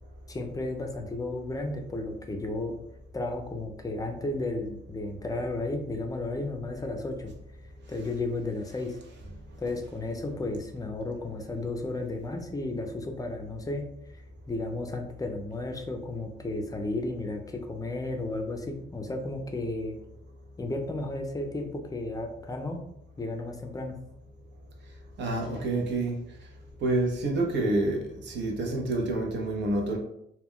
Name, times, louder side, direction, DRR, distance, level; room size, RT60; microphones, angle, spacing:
voice 1, 0.3-2.8 3.1-7.3 7.9-9.0 9.6-13.9 14.1-14.2 14.5-20.0 20.6-22.8 23.2-23.9, left 2 dB, 20° left, 3 dB, 0.4 m, -33 dB
voice 2, 25.2-26.2 26.8-30.0, right 2 dB, 65° right, 1 dB, 0.6 m, -28 dB
2.2 x 2.2 x 3.5 m, 0.78 s
cardioid pair, 90°, 20 cm